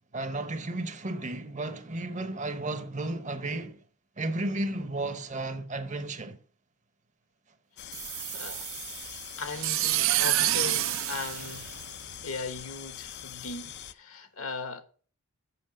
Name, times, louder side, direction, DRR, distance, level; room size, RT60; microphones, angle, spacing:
voice 1, 0.1-3.8 4.2-6.4, right 2 dB, 35° right, 0.8 m, -33 dB
sound 1, 7.8-13.9, left 11 dB, 50° left, 0.4 m, -43 dB
sound 2, 7.9-12.3, right 15 dB, 60° right, 0.4 m, -29 dB
voice 2, 8.3-8.7 9.4-11.7 12.2-14.8, left 3 dB, 70° left, 1.2 m, -38 dB
7.8 x 5.6 x 6.4 m
head